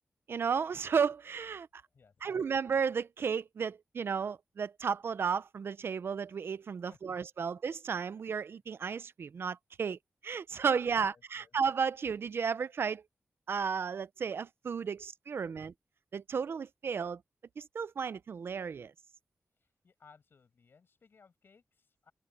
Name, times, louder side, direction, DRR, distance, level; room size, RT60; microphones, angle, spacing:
voice 1, 0.3-1.7 2.2-13.0 13.5-15.7 16.1-17.2 17.6-18.9, right 6 dB, 65° right, 0.5 m, -33 dB
voice 2, 1.9-2.4 6.9-7.0 11.0-11.6 19.8-22.1, left 5 dB, 60° left, 6.8 m, -62 dB
open air
wide cardioid pair, 165°, 4 cm